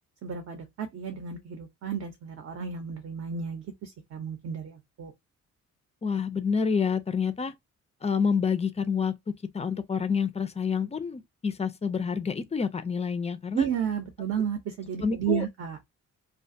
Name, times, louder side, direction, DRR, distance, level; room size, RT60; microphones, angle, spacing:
voice 1, 0.2-5.1 13.5-15.8, right 7 dB, 55° right, 0.7 m, -32 dB
voice 2, 6.0-7.5 8.0-13.7 15.0-15.5, left 6 dB, 20° left, 0.3 m, -28 dB
2.4 x 2.2 x 2.5 m
cardioid pair, 90°, 30 cm